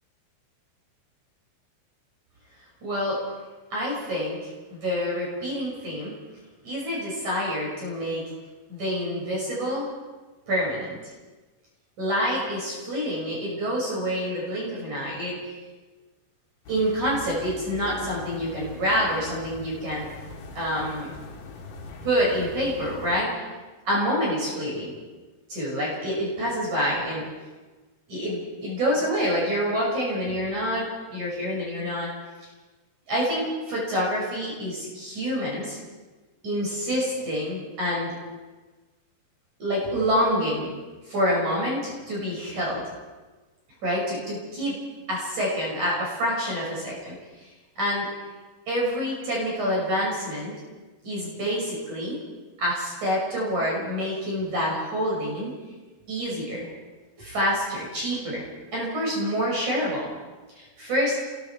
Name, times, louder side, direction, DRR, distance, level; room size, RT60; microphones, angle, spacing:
voice 1, 2.8-3.2 3.7-6.2 6.6-8.2 8.7-9.9 10.5-11.1 12.0-15.4 16.7-20.0 20.5-21.1 22.0-23.4 23.9-24.9 25.5-27.3 28.1-32.1 33.1-35.8 36.4-38.1 39.6-40.7 41.1-42.9 43.8-44.8 45.1-47.5 47.8-48.1 48.7-50.6 51.0-52.2 52.6-55.6 56.1-56.7 57.2-58.4 58.7-60.1 60.5-61.2, equal, 45° right, -4 dB, 7.4 m, -27 dB
sound 1, 16.6-23.2, left 4 dB, 60° left, 3.4 m, -42 dB
30.0 x 22.5 x 4.6 m, 1.3 s
omnidirectional pair, 4.7 m